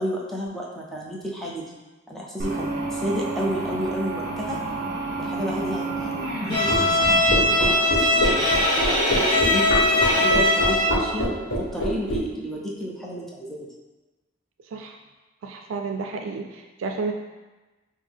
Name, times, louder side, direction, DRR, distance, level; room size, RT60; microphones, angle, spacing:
voice 1, 0.0-1.8 2.1-4.6 5.2-7.1 7.5-11.3 11.6-13.7, equal, ahead, -4 dB, 0.6 m, -32 dB
sound 1, 2.4-8.8, right 2 dB, 55° right, 0.8 m, -31 dB
Bowed string instrument, 6.5-11.1, left 1 dB, 25° left, 1.0 m, -20 dB
sound 2, 6.7-12.2, equal, 70° left, 1.1 m, -25 dB
voice 2, 15.4-17.1, right 4 dB, 85° right, 3 dB, 0.4 m, -31 dB
5.1 x 2.1 x 3.5 m, 1.2 s
head